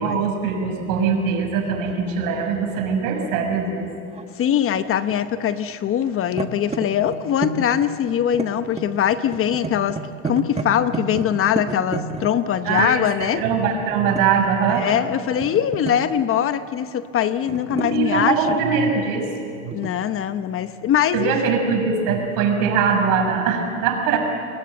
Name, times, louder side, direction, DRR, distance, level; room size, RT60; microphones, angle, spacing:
voice 1, 0.0-3.9 12.6-14.8 17.7-19.2 19.6-19.7 21.1-24.2, right 6 dB, 55° right, 3 dB, 6.3 m, -22 dB
sound 1, 1.2-1.4 1.9-4.3 4.6-5.8 6.0-12.9 13.9-15.0 15.4-16.2 17.3-18.8 19.7-19.9, right 4 dB, 15° right, 1.6 m, -32 dB
voice 2, 4.4-10.0 10.2-13.4 14.8-18.5 19.7-21.3, left 9 dB, 35° left, 11 dB, 0.9 m, -22 dB
29.5 x 21.0 x 7.9 m, 2.4 s
supercardioid pair, 115°, 39 cm